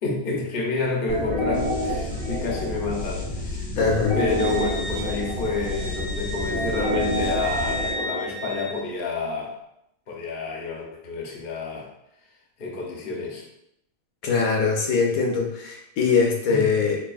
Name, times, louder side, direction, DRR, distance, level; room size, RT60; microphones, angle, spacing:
voice 1, 0.0-3.7 4.1-9.5 10.1-11.9 12.6-13.4 16.5-16.7, left 3 dB, 45° left, -1 dB, 0.9 m, -29 dB
sound 1, 1.1-8.7, equal, 5° left, 1.1 m, -28 dB
voice 2, 3.8-4.2 14.2-17.0, left 5 dB, 75° left, 0 dB, 1.1 m, -22 dB
Wind instrument woodwind instrument, 4.4-8.8, equal, 25° right, 1.2 m, -34 dB
4.5 x 3.2 x 2.5 m, 0.79 s
omnidirectional pair, 1.5 m